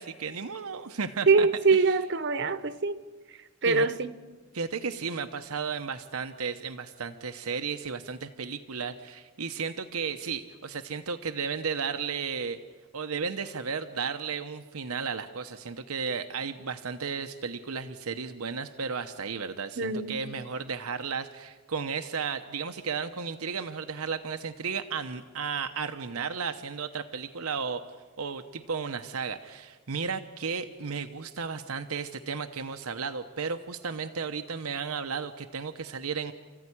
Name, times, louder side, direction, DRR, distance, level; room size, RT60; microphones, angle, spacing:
voice 1, 0.0-2.0 3.6-3.9 4.5-12.6 12.9-27.8 28.2-36.3, right 5 dB, 90° right, 0.9 m, -34 dB
voice 2, 1.3-3.0 3.6-4.1 19.8-20.2, right 4 dB, 55° right, 1.0 m, -24 dB
29.0 x 14.5 x 9.9 m
head